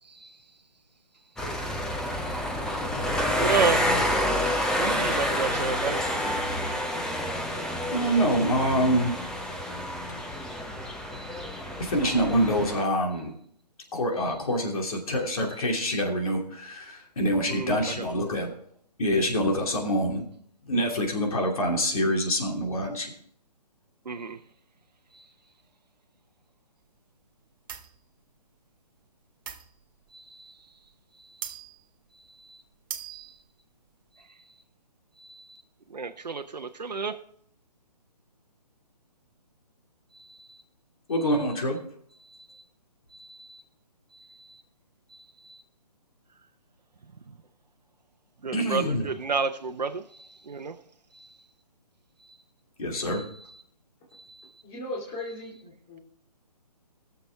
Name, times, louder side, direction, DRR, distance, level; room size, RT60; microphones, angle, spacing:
voice 1, 0.0-0.5 1.3-1.7 2.2-2.6 3.4-3.9 4.8-6.0 11.1-11.6 12.1-12.3 14.2-14.4 15.5-15.6 17.5-18.1 24.0-24.4 25.1-25.3 30.1-30.7 31.1-31.5 32.1-32.6 33.1-33.4 34.1-34.6 35.2-35.6 35.9-37.2 40.1-40.6 41.2-41.6 42.2-42.6 43.1-43.6 44.1-44.6 45.1-45.6 48.4-50.8 51.1-51.5 52.2-52.4 53.1-53.6 54.1-54.6, right 5 dB, 80° right, 0.8 m, -34 dB
sound 1, 1.4-12.8, equal, 5° left, 0.8 m, -29 dB
voice 2, 7.9-9.1 11.8-13.4 13.9-18.5 19.0-20.2 20.6-23.1 41.1-41.8 48.5-49.1 52.8-53.2, equal, 55° left, 2.7 m, -26 dB
sound 2, 27.7-28.0 29.5-30.1 30.9-31.0 31.4-31.9 32.2-32.3 32.7-33.5, right 9 dB, 35° right, 0.9 m, -39 dB
voice 3, 54.6-56.0, left 1 dB, 25° left, 2.6 m, -37 dB
20.5 x 7.0 x 3.5 m
figure-of-eight pair, 140°, 21 cm